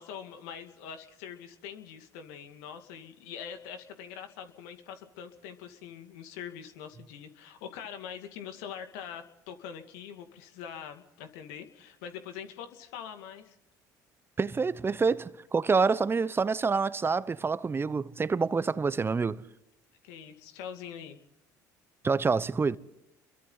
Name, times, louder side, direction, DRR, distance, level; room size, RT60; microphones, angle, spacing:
voice 1, 0.0-13.6 20.0-21.2, left 8 dB, 75° left, 2.3 m, -43 dB
voice 2, 14.4-19.4 22.0-22.8, right 4 dB, 25° right, 0.9 m, -27 dB
29.5 x 23.0 x 4.0 m
hypercardioid pair, 70°, 9 cm